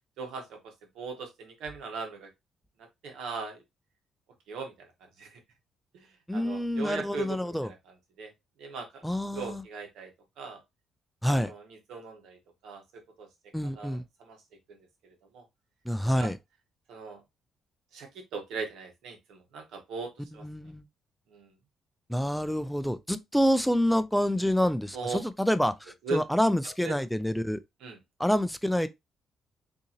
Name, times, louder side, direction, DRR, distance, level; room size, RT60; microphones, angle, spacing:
voice 1, 0.2-2.3 2.8-3.6 4.5-4.9 5.2-5.4 5.9-7.8 8.2-8.3 8.6-9.1 9.3-10.1 10.4-10.6 11.2-13.3 13.6-14.4 14.7-15.4 16.2-16.3 16.9-17.2 17.9-20.5 21.3-21.5 24.9-25.2 26.0-26.2 26.6-27.0 27.8-28.0, right 4 dB, 80° right, 1.1 m, -39 dB
voice 2, 6.3-7.7 9.0-9.6 11.2-11.5 13.5-14.0 15.9-16.4 20.4-20.8 22.1-27.6 28.2-28.9, equal, ahead, 0.3 m, -27 dB
3.7 x 2.7 x 2.8 m
cardioid pair, 90°, 0 cm